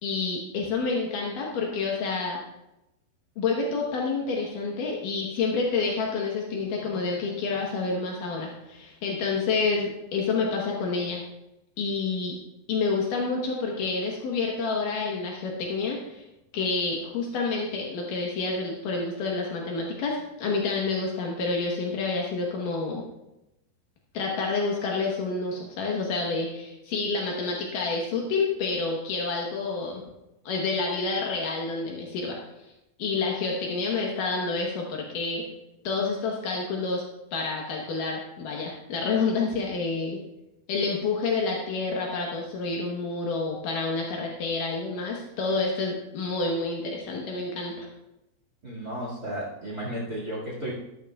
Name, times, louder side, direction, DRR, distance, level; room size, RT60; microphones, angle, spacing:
voice 1, 0.0-2.4 3.4-11.2 11.8-12.4 12.7-16.2 16.5-23.0 24.1-30.0 30.5-32.7 33.0-35.4 35.8-37.0 37.3-40.2 40.7-47.9, left 4 dB, 85° left, -1 dB, 1.8 m, -28 dB
voice 2, 48.6-50.7, right 1 dB, 60° right, -4 dB, 0.9 m, -33 dB
14.0 x 12.5 x 2.4 m, 0.91 s
omnidirectional pair, 5.7 m